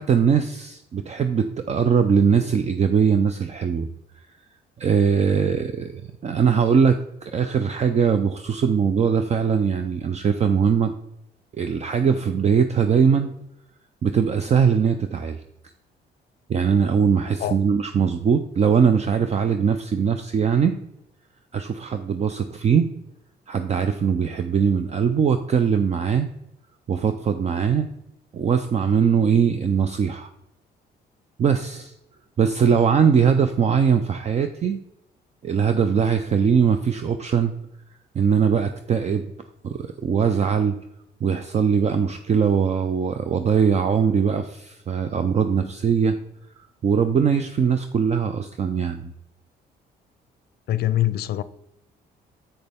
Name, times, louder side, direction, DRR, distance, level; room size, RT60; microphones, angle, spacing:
voice 1, 0.0-3.9 4.8-10.9 11.5-13.3 14.0-15.4 16.5-20.7 21.5-22.9 23.5-26.3 26.9-27.9 28.3-30.3 31.4-31.9 32.4-34.8 35.4-37.6 38.1-39.3 39.6-40.8 41.2-46.2 46.8-49.1, right 6 dB, 40° right, 0.5 m, -21 dB
voice 2, 50.7-51.4, left 13 dB, 65° left, 0.5 m, -23 dB
7.8 x 6.5 x 3.5 m
cardioid pair, 110°, 18 cm